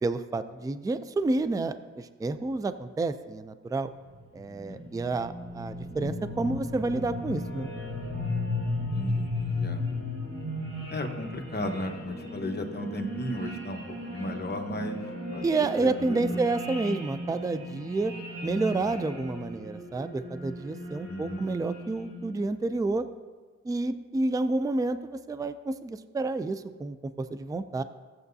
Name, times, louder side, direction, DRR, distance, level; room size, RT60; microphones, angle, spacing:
voice 1, 0.0-3.9 4.3-7.7 15.4-18.1 18.4-23.1 23.6-27.8, right 3 dB, 10° right, 12 dB, 0.3 m, -29 dB
sound 1, 4.1-22.4, left 1 dB, 60° right, 3.1 m, -35 dB
voice 2, 8.8-9.8 10.9-15.0 15.3-15.5 15.8-16.2 21.1-21.4, left 1 dB, 35° left, 3 dB, 1.1 m, -35 dB
15.0 x 7.7 x 2.7 m, 1.5 s
wide cardioid pair, 95°, 30 cm